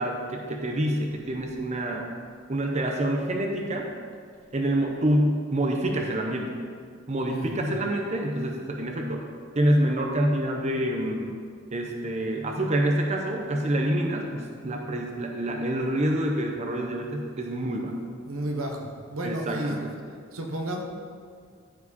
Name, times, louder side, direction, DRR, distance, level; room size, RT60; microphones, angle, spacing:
voice 1, 0.0-2.1 2.5-3.9 4.5-6.5 7.1-9.3 9.5-11.3 11.7-17.9 19.2-19.9, right 1 dB, 35° right, 2 dB, 0.7 m, -27 dB
voice 2, 7.3-7.8 17.9-18.0 18.2-19.8 20.3-20.8, right 1 dB, 85° right, 2 dB, 1.3 m, -32 dB
14.0 x 4.8 x 4.2 m, 2.1 s
head